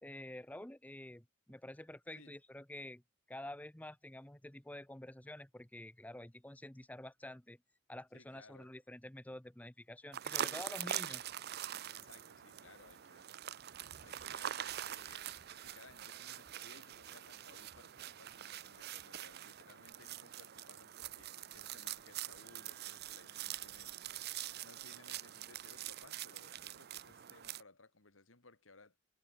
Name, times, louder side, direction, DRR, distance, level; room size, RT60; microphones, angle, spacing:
voice 1, 0.0-3.0 3.3-7.6 7.9-11.2, left 1 dB, 5° left, 0.8 m, -49 dB
voice 2, 8.1-8.7 10.3-11.2 11.8-13.3 14.0-29.0, left 3 dB, 75° left, 3.0 m, -61 dB
sound 1, 10.1-27.6, right 11 dB, 50° right, 0.6 m, -44 dB
head